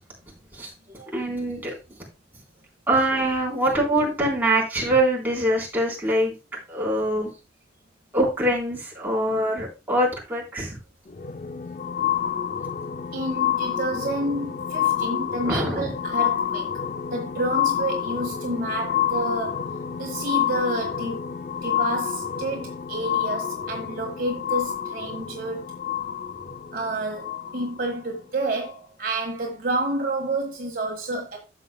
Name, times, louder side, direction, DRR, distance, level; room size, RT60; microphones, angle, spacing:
voice 1, 0.5-1.8 2.9-6.3 6.7-7.3 8.1-10.8 15.5-15.9, right 1 dB, 10° right, 3.7 m, -24 dB
sound 1, 11.1-27.9 28.7-28.8, left 9 dB, 40° left, 0.4 m, -28 dB
voice 2, 13.1-16.7 17.1-19.7 20.0-21.2 21.6-25.7 26.7-31.4, right 2 dB, 50° right, 1.7 m, -29 dB
12.5 x 7.4 x 2.2 m
head